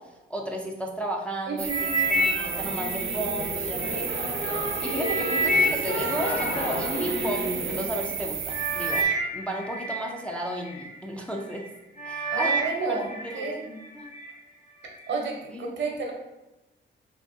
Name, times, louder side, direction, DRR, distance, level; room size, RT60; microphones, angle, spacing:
voice 1, 0.0-4.1 4.6-11.6 12.0-12.6 12.9-13.5 13.9-14.1 15.5-15.8, right 1 dB, 5° left, -1 dB, 0.3 m, -34 dB
voice 2, 1.5-2.3 12.3-13.1 13.3-13.8 15.1-16.1, right 4 dB, 70° right, 1 dB, 0.8 m, -31 dB
sound 1, 1.6-9.0, right 7 dB, 85° right, 0.4 m, -33 dB
sound 2, 1.7-4.0 4.5-7.4 8.1-8.2 8.5-10.9 11.4-11.7 12.0-13.5 13.9-14.3 14.9-15.0, right 1 dB, 40° left, 0.6 m, -29 dB
Singing / Musical instrument, 2.4-7.9, equal, 85° left, 1.2 m, -32 dB
3.5 x 3.0 x 2.6 m, 0.98 s
wide cardioid pair, 135°, 20 cm